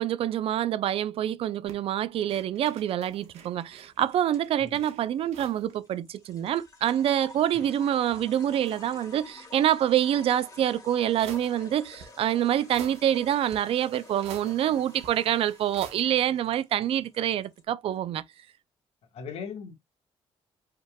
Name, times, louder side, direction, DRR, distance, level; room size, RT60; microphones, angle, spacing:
voice 1, 0.0-18.2, right 11 dB, 65° right, 0.4 m, -26 dB
sound 1, 1.6-5.7 6.0-6.1 6.3-7.4 8.0-9.3 10.4-10.5 11.2-16.0, right 7 dB, 90° right, 1.1 m, -49 dB
sound 2, 3.1-17.6, left 2 dB, 30° left, 2.3 m, -51 dB
voice 2, 19.1-19.7, left 6 dB, 70° left, 1.5 m, -39 dB
5.4 x 3.7 x 2.3 m
cardioid pair, 110°, 11 cm